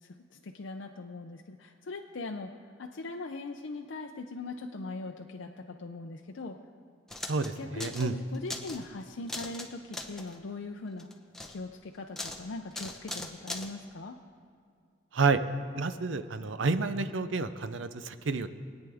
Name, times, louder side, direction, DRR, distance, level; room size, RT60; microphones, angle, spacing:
voice 1, 0.0-2.5 2.8-6.6 7.6-11.1 11.5-14.2, left 3 dB, 70° left, 3 dB, 0.5 m, -40 dB
sound 1, 7.1-7.5 7.8-8.1 8.3-8.9 9.3-9.7 9.9-10.4 11.0-11.6 12.2-12.4 12.7-13.7, left 2 dB, 5° left, 0.8 m, -39 dB
voice 2, 7.3-8.2 15.1-15.4 15.7-18.5, right 4 dB, 75° right, 12 dB, 0.6 m, -29 dB
22.5 x 8.9 x 3.5 m, 2.2 s
head